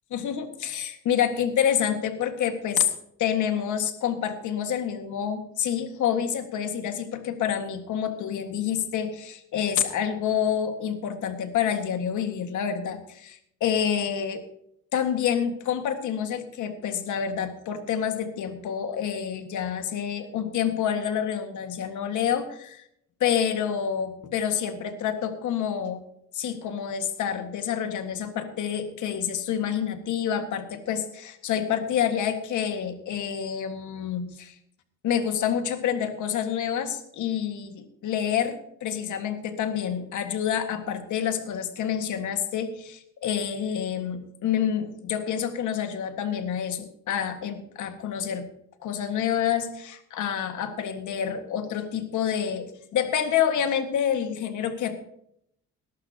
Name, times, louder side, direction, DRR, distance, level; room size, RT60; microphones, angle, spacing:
voice 1, 0.1-2.9 3.2-14.4 14.9-22.8 23.2-26.0 26.3-34.5 35.0-48.5 48.8-55.0, left 8 dB, 75° left, 7 dB, 1.8 m, -28 dB
20.5 x 11.5 x 2.9 m, 0.72 s
cardioid pair, 90°, 30 cm